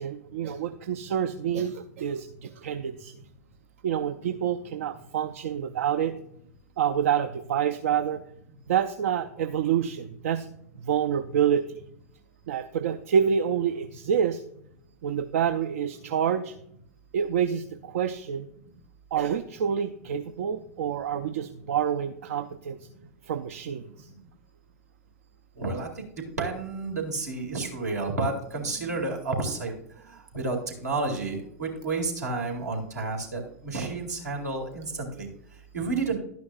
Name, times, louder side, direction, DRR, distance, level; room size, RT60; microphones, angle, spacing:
voice 1, 0.0-3.1 3.8-6.1 6.8-8.2 8.7-10.5 10.8-11.6 12.5-14.4 15.0-16.5 17.1-18.5 19.1-22.8 23.2-24.1, right 8 dB, 55° right, 9 dB, 0.5 m, -27 dB
voice 2, 25.6-25.9 26.4-29.7 30.3-35.3 35.7-36.2, right 3 dB, 75° right, 0 dB, 2.4 m, -30 dB
11.5 x 9.4 x 2.4 m, 0.72 s
figure-of-eight pair, 90°, 9 cm